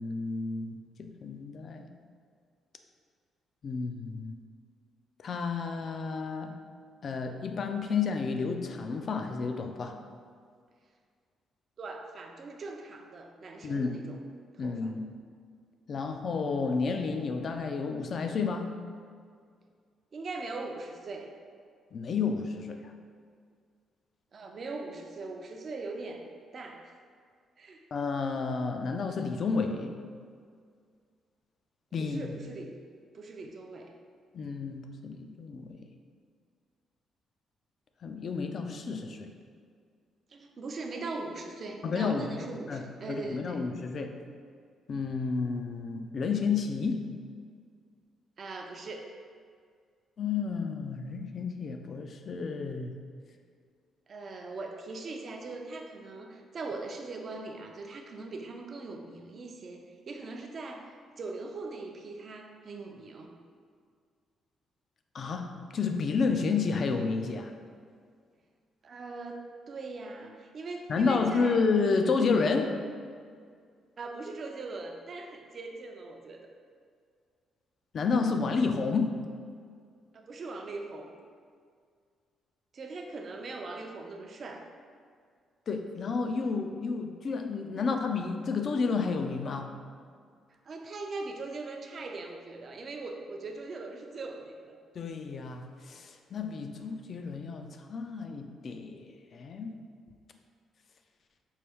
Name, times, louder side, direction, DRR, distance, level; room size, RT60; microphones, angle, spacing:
voice 1, 0.0-1.9 3.6-4.4 5.2-6.6 7.0-10.0 13.6-14.0 14.6-15.0 15.9-18.7 21.9-22.8 27.9-30.0 31.9-32.4 34.3-35.8 38.0-39.3 41.8-44.1 44.9-47.1 50.2-52.9 65.1-65.5 65.7-67.5 70.9-72.8 77.9-79.2 85.7-89.7 94.9-99.8, left 4 dB, 50° left, 5 dB, 0.3 m, -31 dB
voice 2, 11.8-14.2 14.5-14.9 20.1-21.3 24.3-26.3 26.5-26.9 27.6-27.8 32.0-32.8 33.1-33.9 40.3-43.6 48.4-49.2 54.1-63.3 68.8-71.6 74.0-76.5 80.1-81.1 82.7-84.7 87.7-87.8 90.7-94.8, right 3 dB, 50° right, 3 dB, 0.4 m, -41 dB
4.5 x 2.2 x 3.4 m, 2.1 s
cardioid pair, 90°, 0 cm